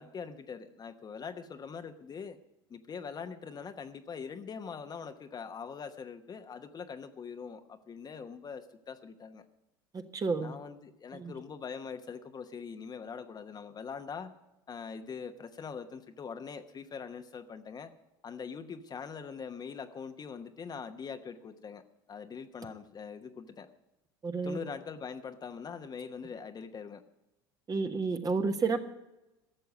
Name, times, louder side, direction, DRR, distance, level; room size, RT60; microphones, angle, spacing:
voice 1, 0.0-2.4 2.7-9.5 10.4-14.3 14.7-17.9 18.2-21.8 22.1-23.7 24.4-27.0, left 6 dB, 35° left, 8 dB, 1.1 m, -43 dB
voice 2, 9.9-10.5 11.1-11.3 24.2-24.6 27.7-28.8, right 4 dB, 30° right, 7 dB, 1.3 m, -31 dB
13.0 x 6.8 x 9.4 m, 0.99 s
hypercardioid pair, 80°, 12 cm